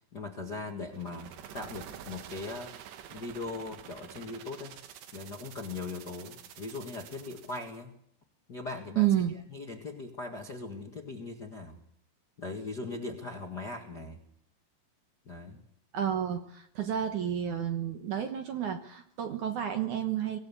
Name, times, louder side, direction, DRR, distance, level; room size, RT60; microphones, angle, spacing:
voice 1, 0.0-2.7 3.1-4.8 5.1-7.9 8.5-9.1 9.5-11.8 12.4-14.2 15.2-15.6, left 3 dB, 45° left, 2 dB, 1.3 m, -40 dB
sound 1, 0.9-7.8, right 10 dB, 80° right, 3.5 m, -48 dB
voice 2, 9.0-9.3 15.9-20.4, right 10 dB, 60° right, 6 dB, 2.2 m, -30 dB
25.0 x 16.5 x 7.0 m, 0.71 s
omnidirectional pair, 4.8 m